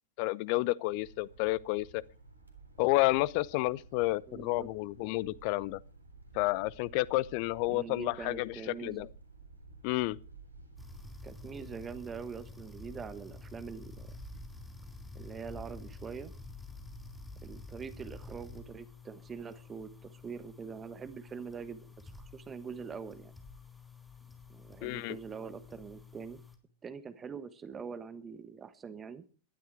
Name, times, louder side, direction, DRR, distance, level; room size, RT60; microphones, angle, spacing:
voice 1, 0.2-2.0 2.8-5.8 6.3-9.1 9.8-10.2 24.8-25.2, left 20 dB, 45° left, 0.7 m, -30 dB
sound 1, 0.8-12.2, right 3 dB, 80° right, 3.6 m, -54 dB
voice 2, 4.3-4.7 7.7-9.1 11.2-14.2 15.1-16.3 17.4-23.3 24.5-26.4 26.8-29.2, right 6 dB, 20° right, 1.3 m, -44 dB
sound 2, 10.8-26.6, left 2 dB, 5° left, 3.8 m, -49 dB
19.0 x 12.0 x 4.8 m
figure-of-eight pair, 90°, 0 cm